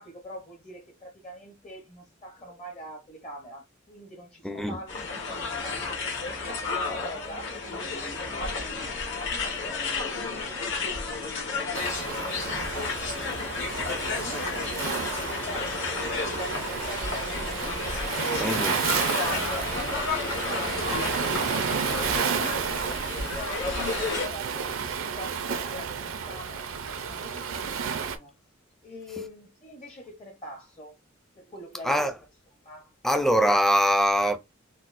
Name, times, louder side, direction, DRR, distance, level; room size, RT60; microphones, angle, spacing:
voice 1, 0.0-5.9 6.4-14.6 15.3-17.9 18.2-18.8 19.3-21.1 21.7-26.6 27.1-28.3 28.8-31.0 31.3-32.1 32.6-32.9, equal, 30° left, 0.8 m, -44 dB
voice 2, 4.4-4.8 18.4-18.7 31.8-32.1 33.0-34.4, equal, ahead, 0.4 m, -23 dB
sound 1, 4.9-24.3, left 4 dB, 65° left, 1.4 m, -32 dB
Waves surf, 11.7-28.2, right 6 dB, 75° right, 0.5 m, -31 dB
4.1 x 2.0 x 2.5 m
head